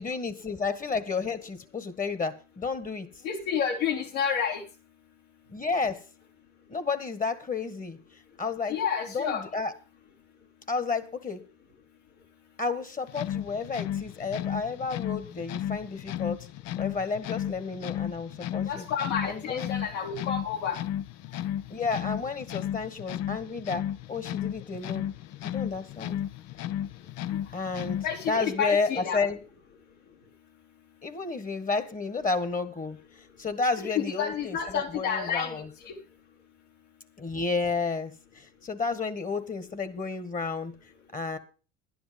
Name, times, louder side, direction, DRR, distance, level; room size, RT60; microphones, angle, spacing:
voice 1, 0.0-3.1 5.5-6.0 6.7-8.0 8.4-8.8 9.1-9.7 10.7-11.4 12.6-16.5 16.8-18.8 19.2-19.7 21.7-25.1 25.4-26.2 27.5-29.4 31.0-33.0 33.4-35.7 37.2-40.7 41.1-41.4, left 4 dB, 20° left, 13 dB, 1.6 m, -31 dB
voice 2, 3.2-4.6 8.7-9.4 18.7-20.8 28.0-29.2 33.8-35.9, left 7 dB, 70° left, 0 dB, 4.2 m, -30 dB
sound 1, 13.1-28.3, left 11 dB, 45° left, 0.6 m, -34 dB
11.5 x 10.5 x 5.3 m, 0.35 s
hypercardioid pair, 80°, 38 cm